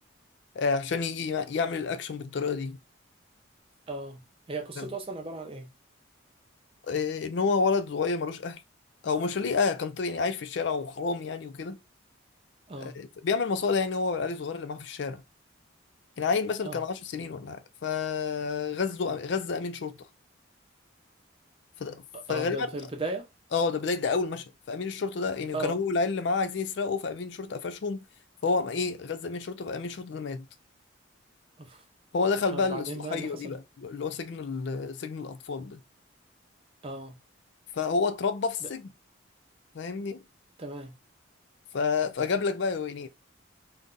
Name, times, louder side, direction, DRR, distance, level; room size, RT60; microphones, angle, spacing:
voice 1, 0.6-2.8 4.8-4.9 6.9-8.6 9.0-11.8 12.8-15.2 16.2-20.0 21.8-22.0 22.3-22.7 23.5-28.0 28.4-30.5 32.1-35.8 37.7-38.9 39.7-40.2 41.7-43.1, left 4 dB, 60° left, 0.4 m, -29 dB
voice 2, 3.9-4.2 4.5-5.7 12.7-13.0 16.6-16.8 22.1-23.3 25.5-25.8 31.6-31.8 32.5-33.5 36.8-37.2 38.6-38.7 40.6-40.9, right 2 dB, 25° right, 0.6 m, -36 dB
2.6 x 2.2 x 3.8 m
head